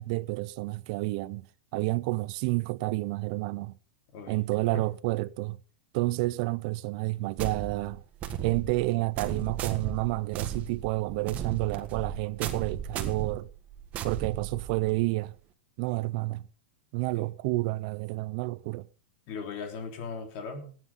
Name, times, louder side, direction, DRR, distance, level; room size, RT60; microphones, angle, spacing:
voice 1, 0.0-1.5 1.7-3.7 4.3-5.6 5.9-8.0 8.4-13.5 14.0-15.4 15.8-16.5 16.9-18.9, right 21 dB, 45° right, 0.6 m, -30 dB
voice 2, 4.1-4.4 4.7-4.9 17.1-17.3 19.3-20.8, left 5 dB, 40° left, 3.4 m, -38 dB
sound 1, 7.4-15.0, right 8 dB, 25° right, 1.6 m, -36 dB
17.5 x 9.6 x 5.6 m
supercardioid pair, 160°, 6 cm